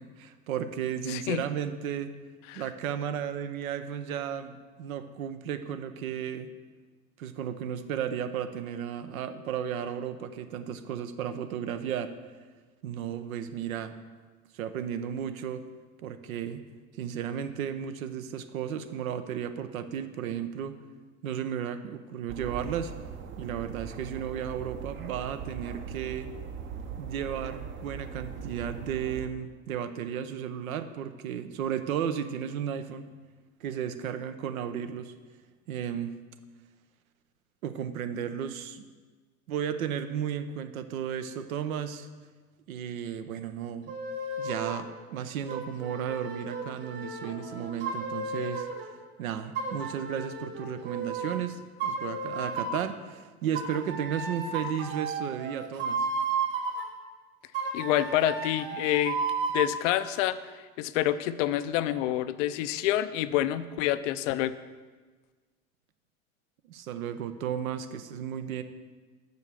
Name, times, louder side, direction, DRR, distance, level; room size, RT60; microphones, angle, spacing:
voice 1, 0.0-2.1 2.5-6.5 7.2-12.1 12.8-13.9 14.5-15.6 16.0-16.6 17.0-20.8 21.2-22.9 23.4-26.3 27.0-33.1 33.6-35.1 35.7-36.1 37.6-38.8 39.5-42.1 42.7-43.9 44.4-48.7 49.2-56.1 66.7-68.6, right 8 dB, 75° right, 10 dB, 0.7 m, -34 dB
voice 2, 1.1-1.4 2.5-2.6 57.7-59.2 59.5-64.5, left 13 dB, 60° left, 13 dB, 0.5 m, -27 dB
sound 1, 22.3-29.3, right 7 dB, 30° right, 0.7 m, -40 dB
sound 2, 43.9-44.9 45.5-48.9 49.5-51.4 51.8-52.9 53.5-56.9 57.5-59.7, right 4 dB, 50° right, 1.9 m, -33 dB
6.2 x 5.3 x 6.7 m, 1.4 s
hypercardioid pair, 80°, 43 cm